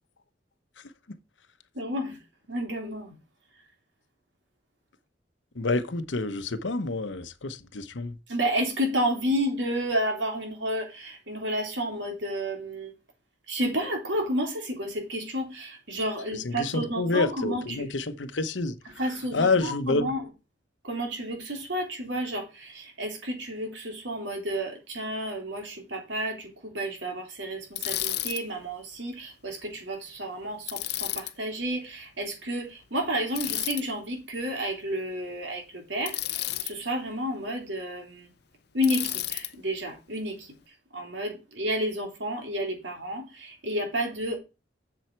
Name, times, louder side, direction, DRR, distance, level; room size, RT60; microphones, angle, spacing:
voice 1, 1.7-2.2 2.5-3.2 8.3-12.9 13.5-17.9 19.0-20.2 20.8-38.3 38.7-44.4, equal, 75° right, 3.5 m, -31 dB
voice 2, 5.5-8.2 16.3-19.0 19.3-20.1, left 3 dB, 85° left, 1.0 m, -28 dB
Bicycle, 27.7-28.4 30.7-31.3 33.3-33.8 36.1-36.7 38.8-39.5, left 15 dB, 60° left, 0.6 m, -31 dB
7.5 x 7.1 x 4.6 m
head